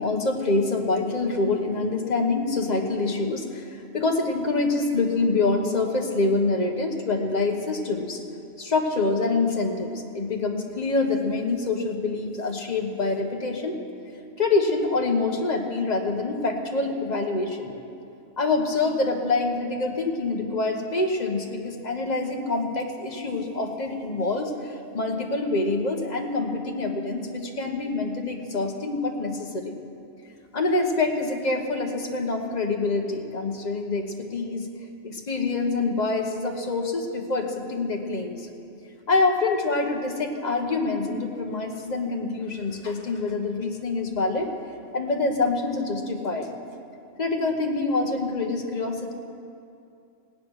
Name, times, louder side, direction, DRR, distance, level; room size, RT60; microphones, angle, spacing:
voice 1, 0.0-8.2 8.6-13.8 14.4-17.7 18.4-29.8 30.5-34.7 35.0-38.5 39.1-44.5 44.9-46.6 47.2-49.1, left 3 dB, 30° left, 3 dB, 1.3 m, -26 dB
18.0 x 9.4 x 6.4 m, 2.5 s
omnidirectional pair, 1.5 m